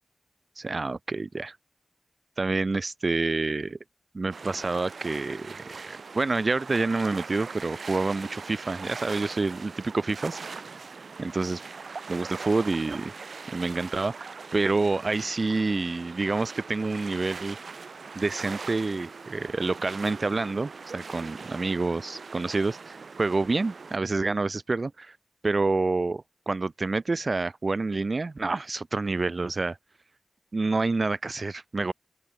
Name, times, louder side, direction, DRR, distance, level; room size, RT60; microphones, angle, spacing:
voice 1, 0.6-1.6 2.4-3.8 4.1-10.8 11.2-11.6 12.1-13.1 13.5-14.3 14.5-17.6 18.2-25.2 25.4-29.8 30.5-31.9, right 3 dB, 55° right, 3.9 m, -28 dB
sound 1, 4.3-24.0, right 4 dB, 85° right, 7.8 m, -41 dB
open air
wide cardioid pair, 75°, 0 cm